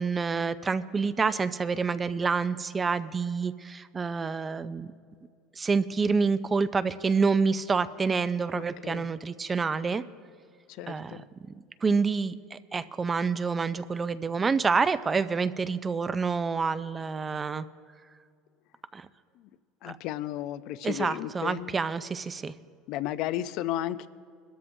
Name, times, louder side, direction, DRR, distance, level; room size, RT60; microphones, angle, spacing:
voice 1, 0.0-4.9 5.6-10.0 10.9-11.2 11.5-17.6 18.9-19.1 19.8-20.0 20.8-22.5, right 5 dB, 20° right, 14 dB, 0.4 m, -28 dB
voice 2, 8.5-9.1 10.7-11.2 19.8-21.8 22.9-24.1, left 13 dB, 60° left, 14 dB, 0.5 m, -34 dB
22.0 x 13.5 x 2.7 m, 2.2 s
supercardioid pair, 140°, 0 cm